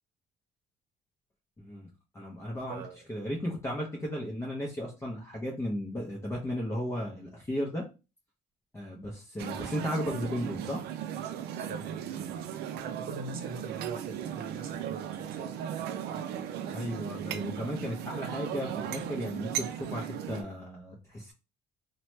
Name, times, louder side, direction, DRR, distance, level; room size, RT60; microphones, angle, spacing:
voice 1, 1.6-1.9 2.1-2.8 3.1-7.8 8.7-10.8 16.7-21.3, equal, 15° left, 0.7 m, -35 dB
voice 2, 2.7-3.0 11.5-12.4 12.8-15.4, right 4 dB, 60° right, 0.8 m, -42 dB
sound 1, 9.4-20.4, right 9 dB, 75° right, 0.4 m, -37 dB
3.0 x 2.2 x 3.0 m
cardioid pair, 110°, 17 cm